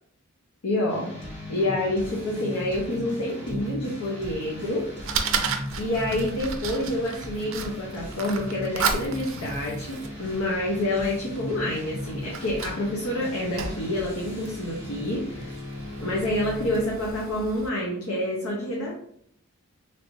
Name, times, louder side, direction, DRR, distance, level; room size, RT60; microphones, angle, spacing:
voice 1, 0.6-1.2 1.5-5.3 5.8-15.6 16.0-18.9, left 1 dB, 85° left, -3 dB, 0.7 m, -28 dB
sound 1, 0.9-16.9, left 1 dB, 50° left, 1.4 m, -38 dB
Fire, 4.2-17.7, right 5 dB, 60° right, 0.4 m, -35 dB
3.3 x 2.6 x 3.0 m, 0.68 s
head